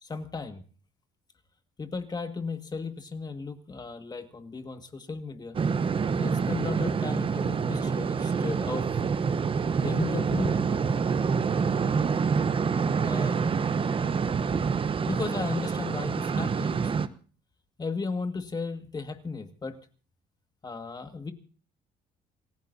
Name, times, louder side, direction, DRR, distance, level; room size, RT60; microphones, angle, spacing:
voice 1, 0.0-0.6 1.8-5.6 6.2-8.9 9.8-10.7 13.0-13.6 15.0-16.9 17.8-19.8 20.6-21.3, left 4 dB, 25° left, 7 dB, 1.8 m, -35 dB
sound 1, 5.5-17.1, right 5 dB, 30° right, 0.9 m, -27 dB
27.5 x 15.5 x 2.7 m, 0.39 s
cardioid pair, 110°, 17 cm